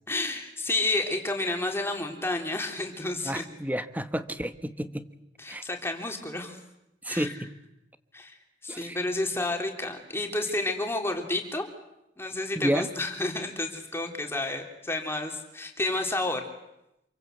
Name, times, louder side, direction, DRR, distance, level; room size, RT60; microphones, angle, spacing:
voice 1, 0.1-3.4 5.4-6.6 7.1-7.3 8.1-11.6 12.2-16.5, left 2 dB, 15° left, 3 dB, 3.4 m, -30 dB
voice 2, 3.2-5.1 5.5-5.6 7.0-7.5 8.7-9.0 12.5-12.9, equal, 10° right, 11 dB, 1.2 m, -30 dB
27.5 x 24.0 x 8.2 m, 0.87 s
head